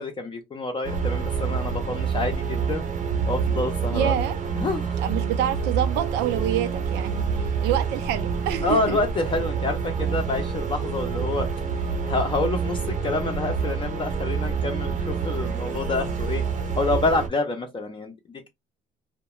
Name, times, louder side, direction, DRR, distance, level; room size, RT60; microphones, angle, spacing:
voice 1, 0.0-2.8 3.3-4.1 4.6-4.9 8.6-11.5 11.8-16.4 16.8-18.1, left 3 dB, 30° left, 0.5 m, -27 dB
sound 1, 0.8-17.3, right 6 dB, 50° right, 0.7 m, -27 dB
voice 2, 3.9-4.4 5.0-9.0, right 11 dB, 90° right, 0.5 m, -27 dB
2.3 x 2.2 x 2.9 m
cardioid pair, 110°, 17 cm